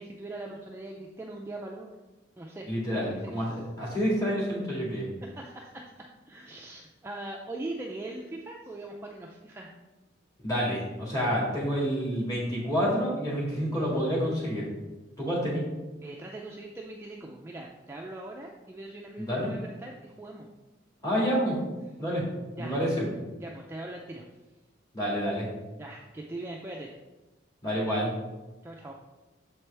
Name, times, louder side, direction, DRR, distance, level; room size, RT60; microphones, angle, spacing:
voice 1, 0.0-1.9 2.4-3.6 5.2-9.8 16.0-20.5 22.6-22.8 23.4-24.3 25.8-27.0 28.6-28.9, right 2 dB, 15° right, -1 dB, 0.3 m, -41 dB
voice 2, 2.7-5.1 10.4-14.7 15.2-15.6 19.2-19.5 21.0-21.6 22.0-22.2 22.6-23.1 24.9-25.5 27.6-28.1, equal, 20° left, -6 dB, 2.0 m, -28 dB
6.8 x 4.4 x 3.3 m, 1.1 s
head